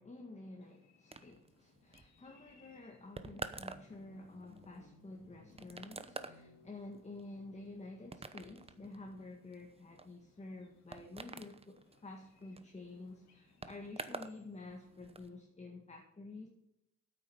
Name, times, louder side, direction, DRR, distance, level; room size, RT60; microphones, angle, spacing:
voice 1, 0.0-16.5, left 2 dB, 20° left, 1 dB, 1.8 m, -50 dB
sound 1, 0.6-15.4, left 4 dB, 65° left, 2.7 m, -70 dB
sound 2, 1.1-14.4 14.7-15.3, right 3 dB, 20° right, 0.9 m, -49 dB
sound 3, 3.2-9.5, left 2 dB, 50° left, 2.1 m, -63 dB
9.1 x 8.6 x 6.3 m, 0.83 s
cardioid pair, 90°, 30 cm